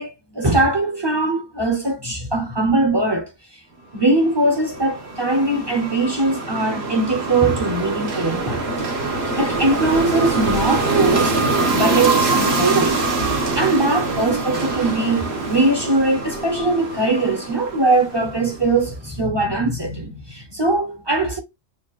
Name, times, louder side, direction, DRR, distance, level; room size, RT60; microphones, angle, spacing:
voice 1, 0.0-3.3 3.9-8.7 9.4-11.4 11.7-21.4, right 2 dB, 25° right, 0.8 m, -21 dB
sound 1, 4.2-18.6, right 3 dB, 65° right, 1.3 m, -24 dB
Gull seagull / Waves surf, 8.0-18.5, left 5 dB, 85° left, 1.6 m, -37 dB
6.5 x 2.4 x 2.3 m
omnidirectional pair, 1.2 m